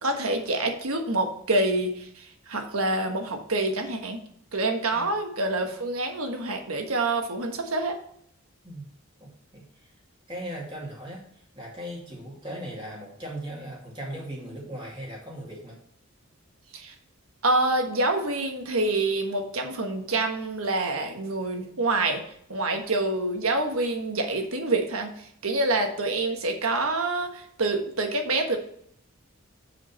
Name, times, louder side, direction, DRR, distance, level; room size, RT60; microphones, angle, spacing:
voice 1, 0.0-4.2 4.5-8.0 16.7-16.9 17.4-22.2 22.5-28.6, right 2 dB, 75° right, 4 dB, 1.4 m, -27 dB
voice 2, 9.2-9.9 10.3-15.8, right 1 dB, 20° right, -3 dB, 2.3 m, -38 dB
7.8 x 5.1 x 4.3 m, 0.67 s
head